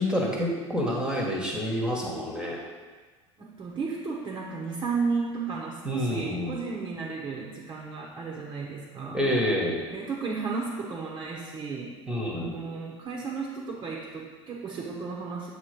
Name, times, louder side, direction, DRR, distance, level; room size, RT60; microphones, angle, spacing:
voice 1, 0.0-2.6 5.8-6.6 9.1-9.9 12.1-12.6, equal, 5° right, -2 dB, 1.4 m, -28 dB
voice 2, 3.4-9.2 9.9-12.0 12.3-15.5, right 4 dB, 30° right, -3 dB, 1.2 m, -33 dB
7.9 x 3.1 x 5.2 m, 1.4 s
figure-of-eight pair, 75°, 15 cm